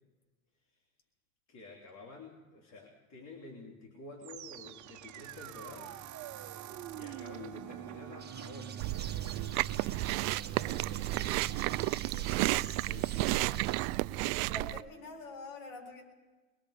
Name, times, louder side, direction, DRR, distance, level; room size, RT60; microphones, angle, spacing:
voice 1, 1.5-6.2 6.5-8.8 9.7-14.0, left 3 dB, 40° left, 1 dB, 3.4 m, -51 dB
sound 1, 4.2-13.4, right 9 dB, 45° right, 1.5 m, -46 dB
sound 2, 8.2-13.8, right 7 dB, 25° right, 1.7 m, -47 dB
Chewing mastication, 8.8-14.8, right 20 dB, 60° right, 0.5 m, -32 dB
voice 2, 14.4-16.0, left 2 dB, 65° left, 2 dB, 6.9 m, -45 dB
23.0 x 22.0 x 5.1 m, 1.2 s
supercardioid pair, 105°, 41 cm